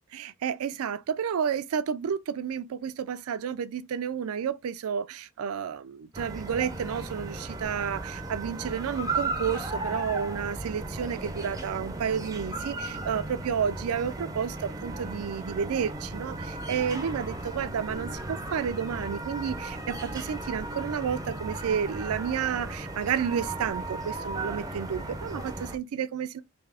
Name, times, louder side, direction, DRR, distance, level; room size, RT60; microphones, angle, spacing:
voice 1, 0.1-26.4, right 7 dB, 80° right, 0.4 m, -31 dB
sound 1, 6.1-25.8, right 2 dB, 15° right, 0.5 m, -36 dB
3.5 x 2.7 x 3.3 m
head